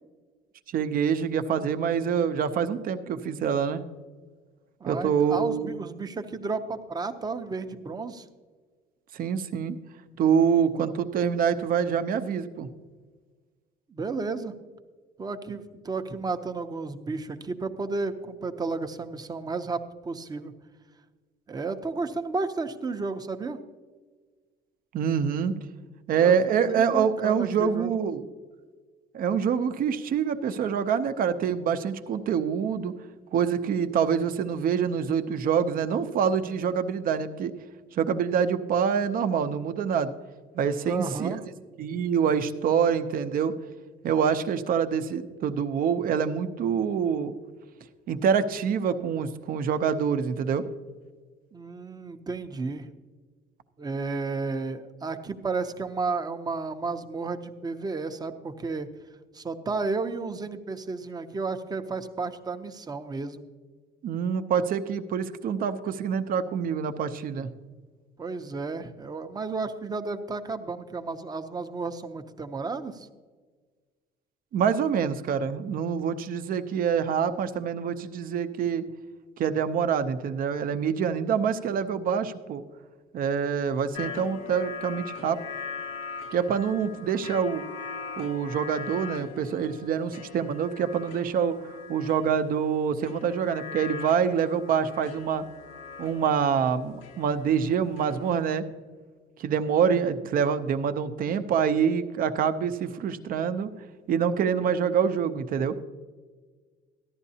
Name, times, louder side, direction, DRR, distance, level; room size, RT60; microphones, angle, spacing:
voice 1, 0.7-3.8 4.9-5.7 9.1-9.8 10.2-12.7 24.9-25.5 26.1-28.2 29.1-32.9 33.3-37.5 37.9-40.1 40.5-41.3 41.8-43.5 44.0-47.3 48.1-50.7 64.0-67.5 74.5-78.8 79.4-82.6 83.1-85.4 86.3-87.6 88.2-91.5 91.9-95.4 96.0-98.6 99.4-103.7 104.1-105.8, right 7 dB, 55° right, 10 dB, 0.7 m, -26 dB
voice 2, 4.8-8.3 10.8-10.9 13.9-14.5 15.2-20.5 21.5-23.6 26.2-28.0 40.8-41.4 51.5-52.9 53.8-58.9 59.3-63.4 68.2-73.1, right 4 dB, 25° right, 8 dB, 0.7 m, -32 dB
sound 1, 83.9-98.6, left 5 dB, 90° left, 0.9 m, -41 dB
14.0 x 11.0 x 2.8 m, 1.4 s
cardioid pair, 110°, 17 cm